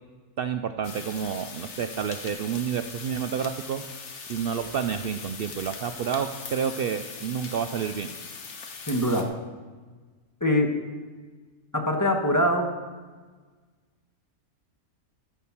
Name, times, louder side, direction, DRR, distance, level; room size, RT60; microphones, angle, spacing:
voice 1, 0.4-3.8 4.2-8.1, right 7 dB, 80° right, 8 dB, 0.5 m, -29 dB
sound 1, 0.8-9.2, left 5 dB, 55° left, 1.3 m, -40 dB
voice 2, 8.9-9.3 10.4-10.7 11.7-12.7, left 1 dB, 15° left, 2 dB, 1.1 m, -23 dB
14.0 x 5.9 x 7.1 m, 1.4 s
omnidirectional pair, 1.5 m